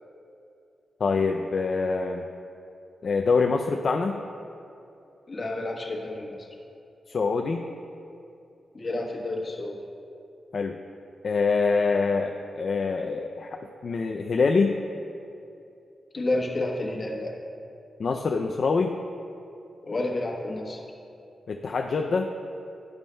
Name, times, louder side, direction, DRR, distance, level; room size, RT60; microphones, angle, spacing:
voice 1, 1.0-2.3 3.0-4.2 7.1-7.7 10.5-10.8 11.2-13.5 13.8-14.8 18.0-19.0 21.5-22.3, left 4 dB, 50° left, 3 dB, 0.4 m, -25 dB
voice 2, 5.3-6.4 8.7-9.8 16.1-17.3 19.8-20.8, left 2 dB, 35° left, 0 dB, 1.1 m, -30 dB
11.5 x 11.0 x 2.2 m, 2.6 s
wide cardioid pair, 165°, 0 cm